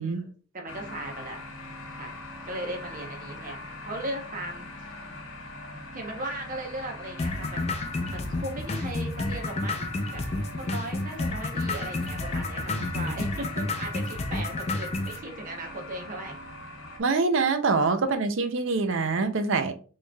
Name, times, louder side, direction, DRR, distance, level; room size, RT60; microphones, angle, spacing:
voice 1, 0.0-1.4 1.9-2.2 2.4-5.1 5.9-7.6 8.1-16.4, right 1 dB, 40° right, 0.9 m, -38 dB
sound 1, 0.7-17.0, left 2 dB, 65° left, 1.0 m, -42 dB
sound 2, 7.2-15.2, left 2 dB, 30° left, 0.4 m, -30 dB
voice 2, 12.8-13.1 17.0-19.7, right 4 dB, 65° right, 0.5 m, -25 dB
4.4 x 3.2 x 2.3 m
head